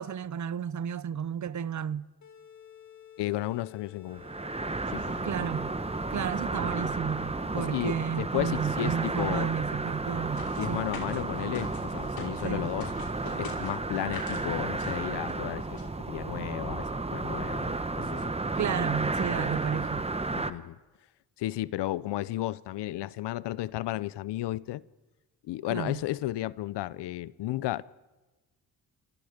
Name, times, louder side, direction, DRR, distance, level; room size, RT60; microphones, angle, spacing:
voice 1, 0.0-2.1 5.2-5.7 6.1-10.9 12.4-12.7 18.6-20.1 25.7-26.0, right 8 dB, 45° right, 0.8 m, -32 dB
sound 1, 2.2-8.2, left 10 dB, 45° left, 2.5 m, -51 dB
voice 2, 3.2-4.2 4.9-5.3 7.6-9.5 10.6-12.9 13.4-18.3 20.3-20.8 21.4-24.8 25.4-27.8, left 15 dB, 85° left, 0.7 m, -33 dB
sound 2, 4.1-20.5, right 3 dB, 15° right, 1.1 m, -32 dB
sound 3, 10.4-12.5 12.8-14.4 14.8-15.0 15.3-15.4 15.6-15.8, left 4 dB, 60° left, 5.7 m, -43 dB
27.5 x 27.0 x 5.1 m
cardioid pair, 85°, 40 cm